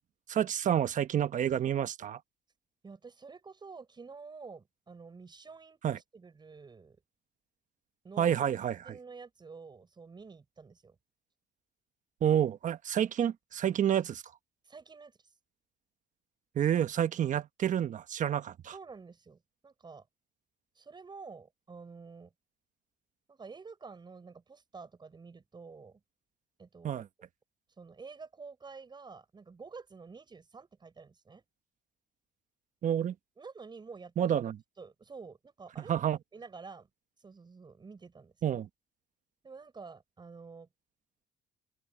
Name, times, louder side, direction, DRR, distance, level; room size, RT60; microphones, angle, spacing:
voice 1, 0.3-2.2 5.8-6.0 8.2-9.0 12.2-14.2 16.5-18.7 26.8-27.1 32.8-33.1 34.2-34.6 35.9-36.2 38.4-38.7, right 10 dB, 50° right, 1.2 m, -29 dB
voice 2, 2.8-7.0 8.0-8.4 8.8-11.0 14.6-15.3 18.7-20.1 20.8-22.3 23.3-26.0 26.6-27.1 27.8-31.4 33.4-34.4 34.8-35.9 36.3-36.9 37.2-38.6 39.4-40.7, right 4 dB, 25° right, 7.0 m, -49 dB
open air
cardioid pair, 110°, 17 cm